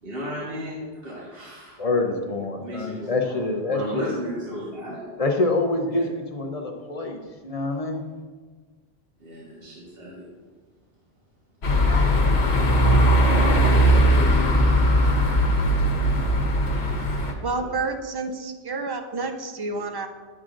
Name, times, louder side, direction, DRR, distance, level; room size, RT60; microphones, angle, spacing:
voice 1, 0.0-1.8 2.6-3.4 3.7-5.0 5.8-6.0 9.2-10.3 17.3-17.7, equal, 60° right, -7 dB, 1.6 m, -35 dB
voice 2, 1.8-4.1 5.2-8.0, left 2 dB, 40° left, 2 dB, 0.7 m, -26 dB
sound 1, 11.6-17.3, equal, 80° left, 1.2 m, -19 dB
voice 3, 17.4-20.1, right 3 dB, 35° right, 5 dB, 0.4 m, -29 dB
10.0 x 7.3 x 2.5 m, 1.4 s
omnidirectional pair, 1.1 m